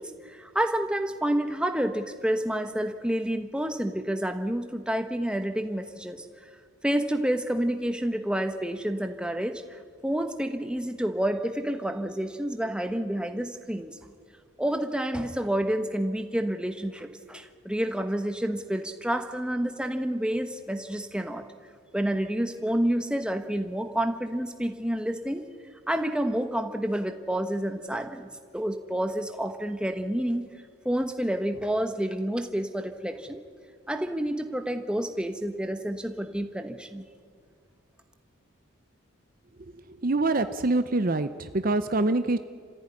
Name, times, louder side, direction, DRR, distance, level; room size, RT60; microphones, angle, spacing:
voice 1, 0.0-6.2 6.8-13.9 14.6-21.4 21.9-25.4 25.9-28.3 28.5-30.5 30.8-33.4 33.9-37.0, right 1 dB, 5° right, 6 dB, 1.2 m, -29 dB
voice 2, 40.0-42.4, right 2 dB, 40° right, 10 dB, 0.7 m, -25 dB
28.5 x 15.5 x 9.9 m, 2.1 s
head